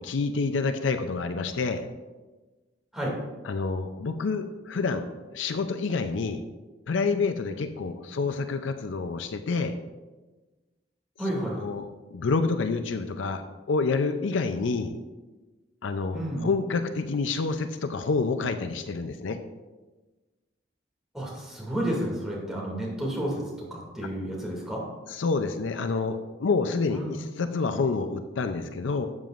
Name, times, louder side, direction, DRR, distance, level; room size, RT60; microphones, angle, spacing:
voice 1, 0.0-1.9 3.4-5.0 5.3-6.4 6.9-9.7 11.5-14.9 15.8-19.4 25.1-29.1, left 4 dB, 70° left, 8 dB, 0.5 m, -28 dB
voice 2, 11.2-11.7 16.1-16.5 21.1-24.8 26.9-27.2, right 1 dB, 5° right, -4 dB, 2.4 m, -31 dB
12.0 x 7.6 x 2.5 m, 1.2 s
head